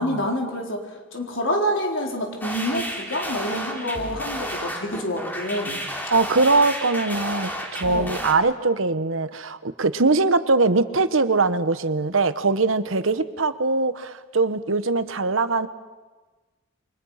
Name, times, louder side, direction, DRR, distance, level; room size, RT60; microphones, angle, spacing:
voice 1, 0.0-5.8 7.8-8.3, equal, 70° left, 1 dB, 4.4 m, -27 dB
sound 1, 2.4-8.3, equal, 10° left, 3.1 m, -32 dB
voice 2, 6.1-15.7, right 3 dB, 85° right, 12 dB, 1.2 m, -22 dB
29.0 x 24.5 x 5.8 m, 1.3 s
head